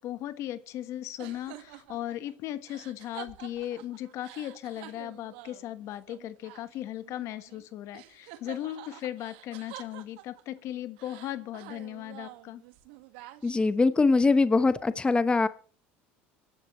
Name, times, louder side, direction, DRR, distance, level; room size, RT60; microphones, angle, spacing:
voice 1, 0.0-12.6, left 13 dB, 60° left, 13 dB, 1.3 m, -37 dB
sound 1, 1.2-7.6 7.9-10.6 11.0-13.8, right 14 dB, 80° right, 1.7 m, -48 dB
voice 2, 13.4-15.5, left 3 dB, 15° left, 13 dB, 1.0 m, -22 dB
24.5 x 11.5 x 3.1 m, 0.42 s
supercardioid pair, 95°, 6 cm